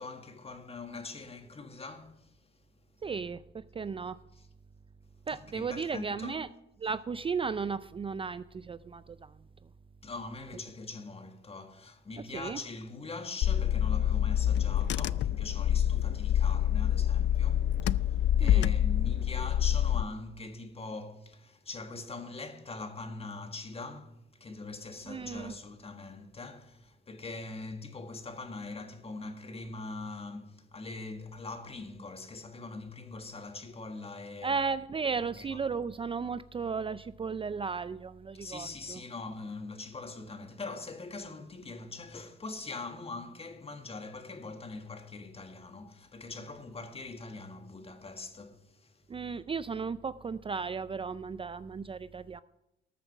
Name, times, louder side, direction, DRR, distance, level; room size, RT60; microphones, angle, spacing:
voice 1, 0.0-2.3 4.3-4.5 5.3-6.4 10.0-34.5 35.4-35.6 38.3-49.0, left 3 dB, 30° left, 1.7 m, -42 dB
voice 2, 3.0-4.2 5.3-6.5 6.8-9.3 12.3-12.6 18.4-18.7 25.1-25.5 34.4-39.0 49.1-52.4, right 5 dB, 25° right, 0.4 m, -35 dB
Car / Engine, 13.4-20.0, left 10 dB, 65° left, 0.4 m, -26 dB
13.5 x 7.1 x 5.9 m
cardioid pair, 90°, 20 cm